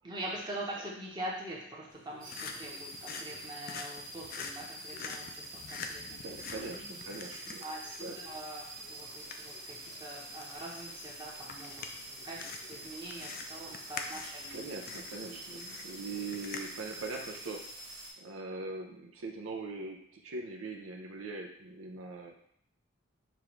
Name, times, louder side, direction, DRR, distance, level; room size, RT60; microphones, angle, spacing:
voice 1, 0.0-7.0 7.3-14.7 15.3-15.7, right 1 dB, 20° right, -4 dB, 0.9 m, -44 dB
sound 1, 1.9-17.5, left 5 dB, 45° left, 0.3 m, -47 dB
sound 2, 2.2-18.1, right 1 dB, 45° right, 1.3 m, -46 dB
voice 2, 6.2-7.6 8.0-8.2 14.5-17.6 18.2-22.3, right 3 dB, 75° right, 2 dB, 0.5 m, -41 dB
6.7 x 2.4 x 3.1 m, 0.68 s
head